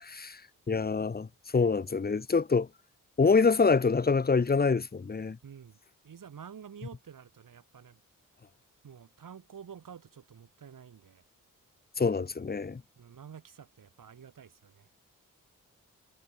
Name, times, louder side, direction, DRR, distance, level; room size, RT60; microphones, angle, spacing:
voice 1, 0.0-0.4 0.7-2.7 3.2-5.4 12.0-12.8, left 4 dB, 30° left, 1.0 m, -26 dB
voice 2, 5.4-5.8 6.0-8.0 8.8-11.2 13.0-14.9, right 7 dB, 75° right, 4.3 m, -49 dB
wide cardioid pair, 110°, 32 cm